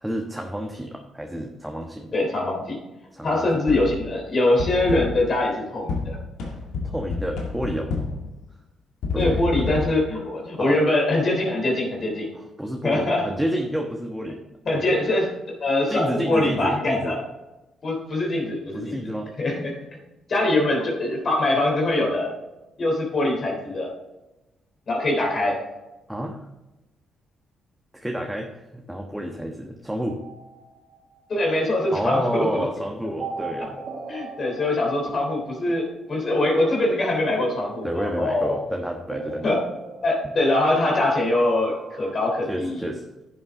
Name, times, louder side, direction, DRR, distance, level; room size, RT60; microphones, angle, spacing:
voice 1, 0.0-2.1 3.1-3.5 6.8-7.9 9.1-9.8 10.6-10.8 12.3-14.4 14.7-15.0 15.9-17.2 18.7-19.3 25.5-25.6 26.1-26.5 28.0-30.2 31.9-33.8 37.8-39.5 42.5-43.0, equal, 5° right, 2 dB, 1.2 m, -29 dB
voice 2, 2.1-2.8 3.2-6.2 9.1-12.3 12.8-13.3 14.7-17.2 17.8-19.0 19.4-19.8 20.3-22.3 22.8-23.9 24.9-25.6 31.3-32.7 34.1-38.6 39.4-39.6 40.0-42.8, left 2 dB, 50° left, 0 dB, 3.3 m, -23 dB
sound 1, 3.7-4.1 4.6-5.3 5.9-8.3 9.0-9.8, left 4 dB, 75° left, 1.9 m, -29 dB
sound 2, 30.1-31.4 33.2-35.8 36.4-38.4 39.1-41.0 41.3-42.7, right 4 dB, 60° right, 1.1 m, -39 dB
10.5 x 7.3 x 3.8 m, 1.0 s
hypercardioid pair, 50°, 0 cm